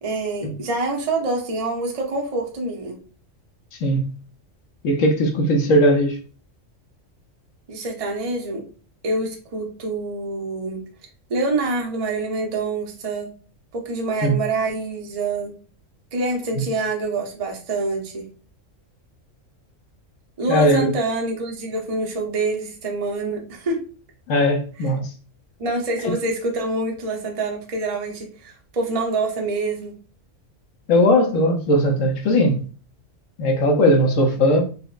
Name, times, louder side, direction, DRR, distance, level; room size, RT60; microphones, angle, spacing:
voice 1, 0.0-3.0 7.7-8.6 9.0-10.8 11.3-13.3 13.7-15.5 16.1-18.3 20.4-23.8 24.8-24.9 25.6-30.0, right 2 dB, 45° right, 0.5 m, -26 dB
voice 2, 3.8-4.1 4.8-6.1 14.2-14.4 20.5-20.9 24.3-25.1 30.9-32.6 33.4-34.6, equal, 80° left, 1.0 m, -18 dB
4.2 x 2.0 x 2.4 m
omnidirectional pair, 1.3 m